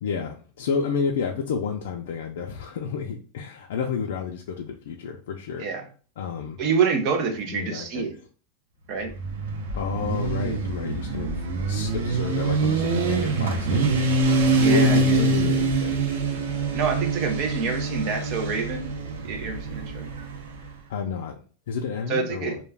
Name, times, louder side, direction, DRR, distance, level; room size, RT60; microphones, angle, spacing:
voice 1, 0.0-5.6 6.2-6.6 7.5-8.1 9.7-11.4 11.7-14.0 14.6-16.0 20.9-21.4 21.7-22.6, left 6 dB, 80° left, 1 dB, 0.4 m, -30 dB
voice 2, 6.6-8.2 8.9-9.1 14.4-15.2 16.7-18.9 19.2-20.1 22.1-22.6, right 5 dB, 40° right, 5 dB, 0.5 m, -27 dB
Motorcycle, 9.0-20.7, right 3 dB, 85° right, 0.6 m, -25 dB
2.2 x 2.2 x 3.2 m, 0.39 s
supercardioid pair, 160°, 0 cm